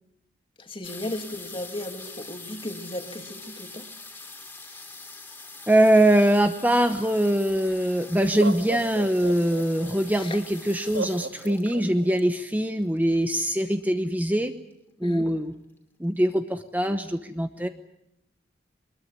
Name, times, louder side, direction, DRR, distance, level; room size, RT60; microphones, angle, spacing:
voice 1, 0.6-3.9 4.7-4.8 10.1-10.4 15.0-15.3, left 1 dB, 30° left, 5 dB, 2.6 m, -36 dB
sound 1, 0.8-13.4 14.2-14.3 14.5-14.9 15.2-15.8 16.3-16.4 16.6-16.7, left 3 dB, 10° left, 3.0 m, -44 dB
voice 2, 5.7-14.5 15.0-15.5 16.0-17.7, right 1 dB, 10° right, 7 dB, 0.9 m, -22 dB
Laughter, 7.5-7.6 8.2-10.0 10.9-12.2, right 3 dB, 85° right, 2.0 m, -33 dB
23.0 x 21.5 x 9.7 m, 0.83 s
head